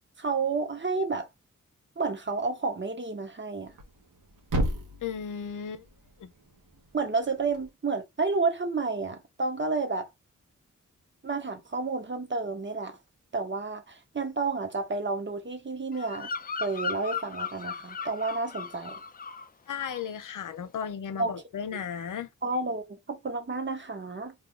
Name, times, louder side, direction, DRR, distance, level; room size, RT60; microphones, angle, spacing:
voice 1, 0.2-1.3 2.0-3.7 6.9-10.1 11.2-13.0 13.3-16.3 16.6-19.0 21.2-21.3 22.4-24.3, right 3 dB, 35° right, 0.9 m, -30 dB
Thump thud, 3.6-7.7, right 1 dB, 85° right, 1.1 m, -35 dB
voice 2, 5.0-5.8 6.2-6.3 19.7-22.3, left 7 dB, 80° left, 0.6 m, -35 dB
Bird vocalization bird call bird song, 15.9-19.5 19.7-20.2, left 5 dB, 30° left, 0.4 m, -36 dB
2.8 x 2.3 x 3.6 m
cardioid pair, 60°, 31 cm